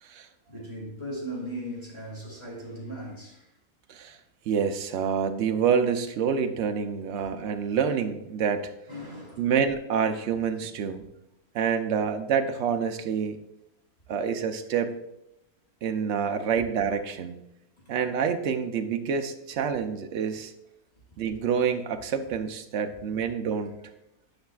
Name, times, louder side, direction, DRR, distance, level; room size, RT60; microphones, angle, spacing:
voice 1, 0.5-3.5 8.9-9.5, equal, 20° left, -4 dB, 2.6 m, -38 dB
voice 2, 4.5-8.7 9.4-11.0 11.5-13.4 14.1-14.9 15.8-17.4 17.9-20.5 21.2-23.9, right 7 dB, 60° right, 7 dB, 0.8 m, -27 dB
10.5 x 5.9 x 2.3 m, 0.85 s
omnidirectional pair, 1.5 m